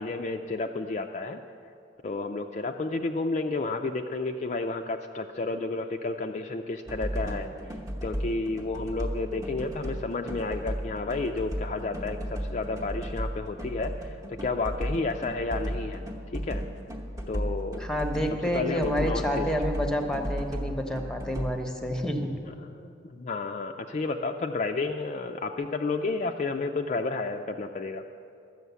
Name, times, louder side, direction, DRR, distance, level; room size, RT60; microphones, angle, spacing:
voice 1, 0.0-1.4 2.0-7.5 8.0-16.0 16.3-16.6 17.3-17.9 18.5-19.5 22.6-28.0, left 3 dB, 40° left, 4 dB, 0.4 m, -31 dB
sound 1, 6.9-21.6, equal, 20° right, 0.9 m, -35 dB
voice 2, 17.8-22.3, equal, 5° left, 4 dB, 0.9 m, -29 dB
12.5 x 6.4 x 8.1 m, 2.5 s
head